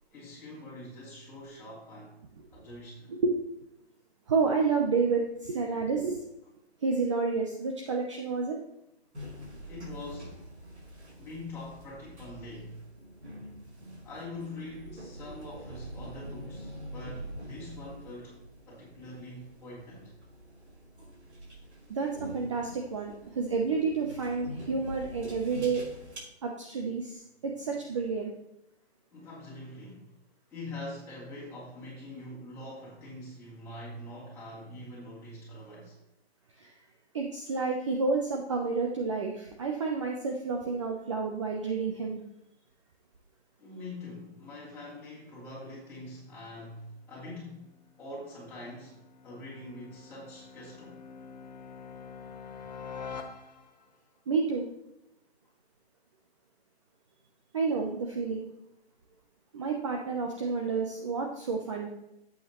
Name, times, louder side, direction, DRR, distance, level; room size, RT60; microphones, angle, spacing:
voice 1, 0.1-2.2 2.5-3.1 9.4-10.4 11.1-12.9 14.0-18.4 18.6-20.1 29.1-30.1 30.5-36.0 43.6-47.7 48.0-51.0, left 1 dB, 5° left, 3.4 m, -44 dB
voice 2, 4.3-6.2 6.8-8.6 21.9-25.8 26.4-28.3 36.6-36.7 37.1-42.2 54.3-54.7 57.5-58.5 59.5-61.9, right 4 dB, 30° right, 0.7 m, -30 dB
sound 1, 9.1-26.2, equal, 85° right, 3.5 m, -45 dB
sound 2, 47.5-54.0, left 5 dB, 40° left, 1.1 m, -46 dB
11.5 x 8.1 x 3.0 m
hypercardioid pair, 160°, 33 cm